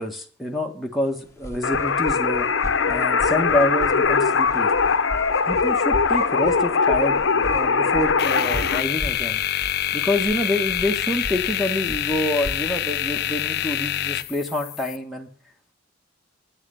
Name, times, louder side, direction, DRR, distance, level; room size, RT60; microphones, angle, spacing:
voice 1, 0.0-2.5 2.9-4.7 5.5-9.4 9.9-15.3, left 1 dB, ahead, 3 dB, 1.6 m, -27 dB
sound 1, 1.1-14.3, equal, 15° left, 1.2 m, -37 dB
sound 2, 1.6-8.8, left 5 dB, 90° left, 0.9 m, -21 dB
sound 3, 8.2-15.0, left 12 dB, 55° left, 0.5 m, -26 dB
10.0 x 7.9 x 7.8 m, 0.43 s
head